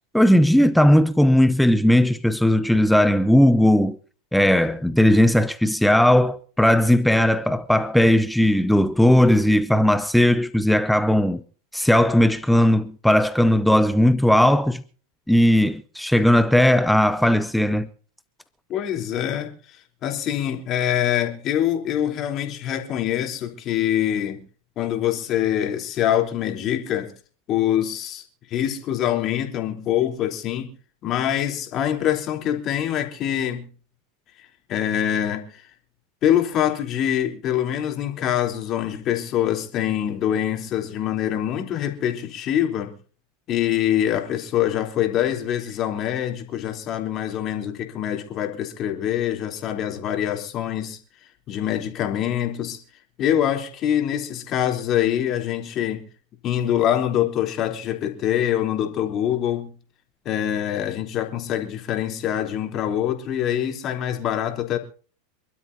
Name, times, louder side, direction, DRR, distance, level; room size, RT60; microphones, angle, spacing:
voice 1, 0.1-4.0 4.3-11.4 11.7-14.8 15.3-17.9, left 1 dB, ahead, 0.8 m, -17 dB
voice 2, 18.7-24.4 24.8-27.1 27.5-28.2 28.5-30.7 31.0-33.7 34.4-35.7 36.2-42.9 43.5-51.0 51.5-52.8 53.2-56.0 56.4-59.7 60.3-64.8, left 11 dB, 40° left, 3.5 m, -24 dB
27.5 x 12.5 x 2.8 m
figure-of-eight pair, 90°, 0 cm